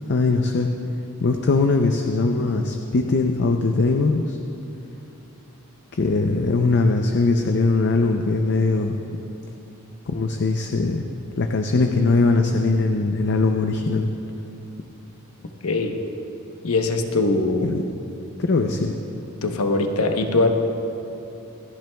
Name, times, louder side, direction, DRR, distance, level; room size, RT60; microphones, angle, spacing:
voice 1, 0.1-0.7 1.2-4.4 5.9-9.0 10.1-11.0 11.4-14.1 17.6-17.8 18.4-19.0, left 3 dB, 55° left, 4 dB, 0.5 m, -21 dB
voice 2, 15.6-16.0 16.6-17.7 19.4-20.5, left 2 dB, 85° left, 5 dB, 0.9 m, -21 dB
26.0 x 10.5 x 2.3 m, 2.9 s
head